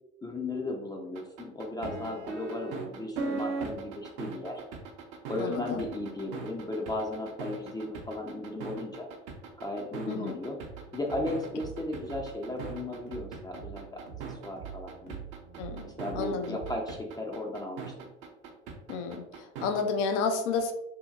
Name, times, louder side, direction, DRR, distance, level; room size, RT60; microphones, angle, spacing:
voice 1, 0.2-4.6 5.3-9.1 9.6-10.6 10.9-13.9 14.3-15.2 15.8-17.9, left 2 dB, 10° left, 1 dB, 0.4 m, -35 dB
sound 1, 1.1-19.8, right 4 dB, 60° right, 0.7 m, -39 dB
voice 2, 5.4-5.8 10.1-10.4 15.6-16.6 18.9-20.7, left 5 dB, 75° left, 6 dB, 0.5 m, -31 dB
sound 2, 10.7-16.8, right 8 dB, 75° right, 0.9 m, -45 dB
2.7 x 2.7 x 2.3 m, 0.87 s
hypercardioid pair, 70°, 36 cm